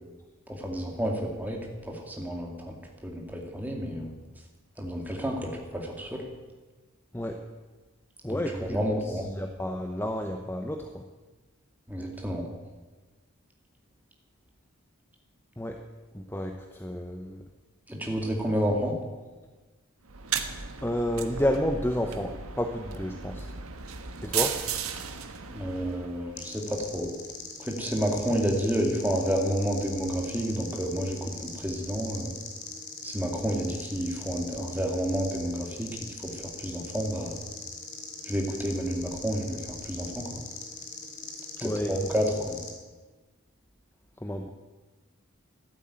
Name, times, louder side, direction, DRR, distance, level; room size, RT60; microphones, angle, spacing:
voice 1, 0.5-2.8 3.0-4.1 4.8-6.2 8.3-9.2 11.9-12.5 17.9-19.0 25.5-27.1 27.6-32.3 33.0-37.4 38.3-40.4 41.6-42.6, equal, 10° right, 1 dB, 2.4 m, -30 dB
voice 2, 8.2-11.0 15.6-15.8 16.1-17.4 20.8-23.5 24.2-24.6 41.6-41.9 44.2-44.5, left 1 dB, 10° left, 4 dB, 0.8 m, -31 dB
sound 1, 20.1-26.5, right 7 dB, 80° right, 1.4 m, -35 dB
sound 2, 26.4-42.7, left 4 dB, 35° left, 2.8 m, -41 dB
14.0 x 11.5 x 8.8 m, 1.3 s
head